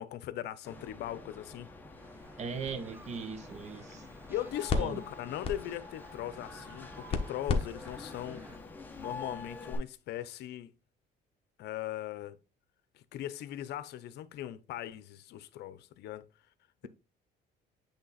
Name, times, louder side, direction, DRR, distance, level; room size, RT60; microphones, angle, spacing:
voice 1, 0.0-1.7 4.3-8.4 9.0-10.7 11.6-12.4 12.9-16.3, left 12 dB, 70° left, 0.7 m, -39 dB
sound 1, 0.6-9.8, left 3 dB, 10° left, 1.0 m, -47 dB
sound 2, 2.0-8.6, right 2 dB, 10° right, 0.7 m, -55 dB
sound 3, 2.2-9.8, left 4 dB, 30° left, 1.1 m, -39 dB
voice 2, 2.4-4.0 4.7-5.0, right 6 dB, 40° right, 0.9 m, -39 dB
8.1 x 3.4 x 4.1 m
cardioid pair, 130°, 18 cm